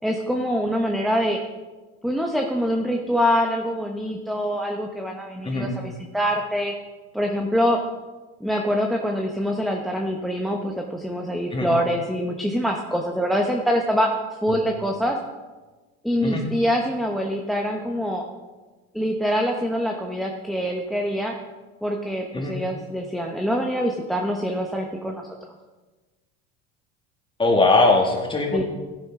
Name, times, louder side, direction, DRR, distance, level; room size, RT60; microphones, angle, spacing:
voice 1, 0.0-1.4 2.0-6.7 7.1-7.8 8.4-14.1 14.4-15.2 16.0-18.2 18.9-21.3 21.8-25.2 28.5-28.6, equal, ahead, 2 dB, 0.9 m, -24 dB
voice 2, 27.4-28.6, left 3 dB, 15° left, 1 dB, 2.1 m, -20 dB
13.0 x 10.0 x 3.7 m, 1.3 s
supercardioid pair, 120°, 32 cm